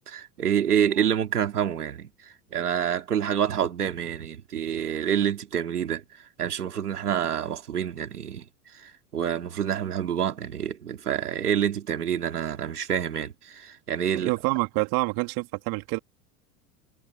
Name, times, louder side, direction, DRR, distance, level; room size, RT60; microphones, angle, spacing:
voice 1, 0.1-2.1 2.5-6.0 6.4-8.4 8.7-14.3, right 9 dB, 80° right, 3.3 m, -27 dB
voice 2, 14.1-16.0, right 27 dB, 50° right, 3.3 m, -27 dB
hypercardioid pair, 90°, 45 cm